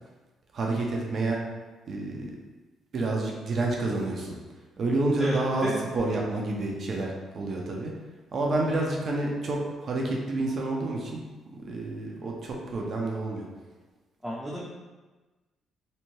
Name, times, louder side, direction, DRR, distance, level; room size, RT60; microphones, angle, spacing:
voice 1, 0.5-1.4 1.9-2.3 2.9-4.4 4.8-7.9 8.3-11.2 11.5-13.5, right 2 dB, 55° right, -1 dB, 0.5 m, -29 dB
voice 2, 14.2-14.6, equal, 5° right, -6 dB, 0.5 m, -32 dB
2.7 x 2.1 x 3.0 m, 1.2 s
cardioid pair, 90°, 0 cm